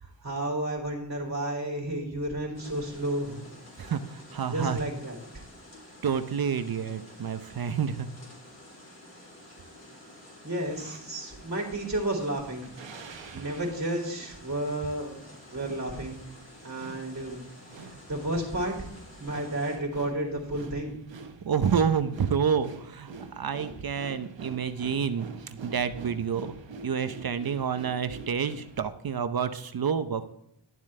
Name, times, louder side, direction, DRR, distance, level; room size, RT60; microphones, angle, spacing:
voice 1, 0.0-3.4 4.4-5.2 10.4-12.7 13.3-15.2 15.5-16.2 16.6-17.4 18.1-18.9 19.2-20.9, right 1 dB, 40° right, -1 dB, 3.2 m, -32 dB
sound 1, 2.5-19.8, left 1 dB, 35° left, 3.5 m, -50 dB
voice 2, 3.8-4.8 6.0-8.1 21.4-26.6 26.8-30.2, right 7 dB, 55° right, 10 dB, 0.7 m, -29 dB
sound 2, 10.6-11.1 11.9-28.8, right 4 dB, 80° right, 1.1 m, -46 dB
11.5 x 7.3 x 3.2 m, 0.78 s
wide cardioid pair, 75°, 44 cm